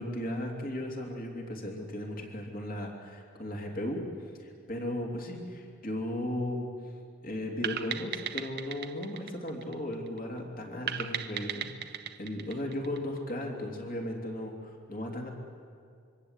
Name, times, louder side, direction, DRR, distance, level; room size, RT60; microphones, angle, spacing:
voice 1, 0.0-4.1 4.4-6.7 7.2-15.3, left 1 dB, 40° left, 1 dB, 3.1 m, -36 dB
sound 1, 7.6-10.2 10.9-13.4, right 8 dB, 50° right, 1.0 m, -37 dB
26.0 x 23.5 x 8.3 m, 2.3 s
head